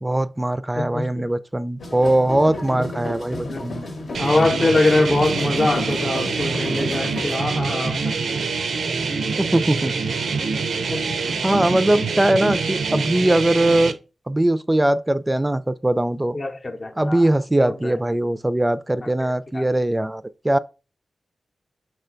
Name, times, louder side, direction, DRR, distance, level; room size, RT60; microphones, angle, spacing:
voice 1, 0.0-3.9 9.4-10.0 11.4-14.0 14.3-16.4 17.0-20.6, right 1 dB, 20° right, 0.3 m, -21 dB
voice 2, 0.8-1.2 2.8-3.1 3.4-3.7 3.9-8.2 10.9-11.4 12.0-12.1 16.3-17.3 17.6-18.0 19.0-19.1 19.5-19.7, left 2 dB, 45° left, 0.6 m, -24 dB
sound 1, 1.8-7.4, left 1 dB, 70° left, 0.8 m, -32 dB
sound 2, 4.1-13.9, right 4 dB, 80° right, 0.4 m, -25 dB
6.1 x 2.2 x 3.8 m
cardioid pair, 45°, 0 cm